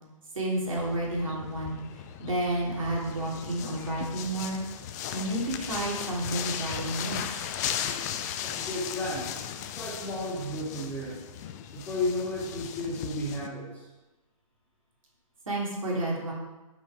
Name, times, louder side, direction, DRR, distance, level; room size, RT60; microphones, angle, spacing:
voice 1, 0.3-1.8 2.2-4.6 5.1-7.4 15.5-16.3, right 1 dB, 70° right, -3 dB, 3.3 m, -30 dB
sound 1, 0.8-13.5, left 9 dB, 30° left, 0.6 m, -37 dB
voice 2, 8.4-9.3 9.8-11.2 11.7-13.9, left 1 dB, 10° left, -7 dB, 3.2 m, -33 dB
10.0 x 6.2 x 5.0 m, 1.1 s
figure-of-eight pair, 130°, 18 cm